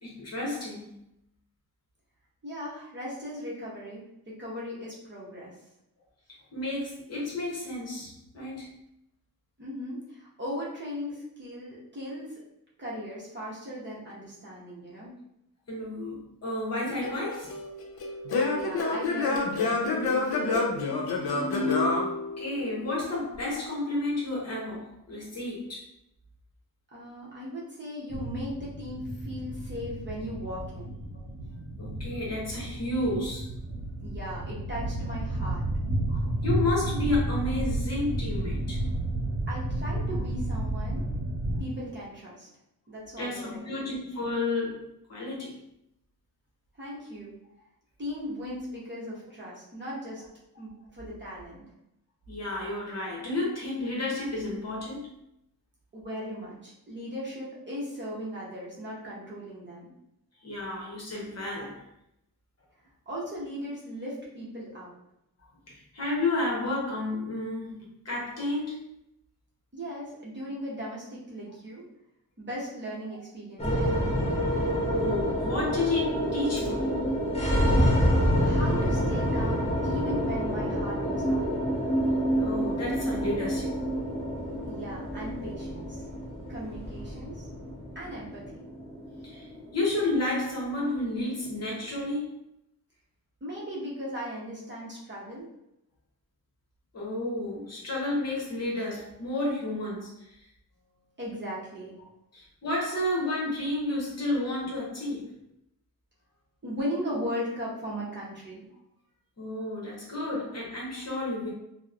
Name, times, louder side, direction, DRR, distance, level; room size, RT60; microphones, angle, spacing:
voice 1, 0.0-0.9 6.5-8.7 15.7-17.6 22.4-25.8 31.8-33.5 35.4-35.5 36.1-38.8 43.2-45.6 52.3-55.1 60.4-61.8 65.7-69.0 74.9-76.8 82.3-83.8 89.2-92.4 96.9-100.4 102.3-105.3 109.4-111.5, left 2 dB, 45° left, -4 dB, 0.8 m, -31 dB
voice 2, 2.4-5.5 9.6-12.4 12.8-15.1 18.5-20.9 26.9-30.9 34.0-35.6 39.5-41.0 41.6-42.5 42.9-43.8 46.8-47.3 48.0-50.2 50.6-51.6 55.9-59.9 63.1-64.9 69.7-71.8 72.4-74.2 78.2-81.5 84.7-86.0 86.5-87.4 87.9-88.6 93.4-95.5 101.2-101.9 106.6-108.7, equal, 30° right, -6 dB, 0.7 m, -38 dB
Singing / Plucked string instrument, 17.0-22.9, left 3 dB, 80° left, 0.6 m, -28 dB
sound 1, 28.1-41.6, right 1 dB, 65° right, 0.8 m, -32 dB
sound 2, 73.6-92.0, equal, 15° left, 0.5 m, -28 dB
2.8 x 2.0 x 2.4 m, 0.81 s
wide cardioid pair, 165°, 37 cm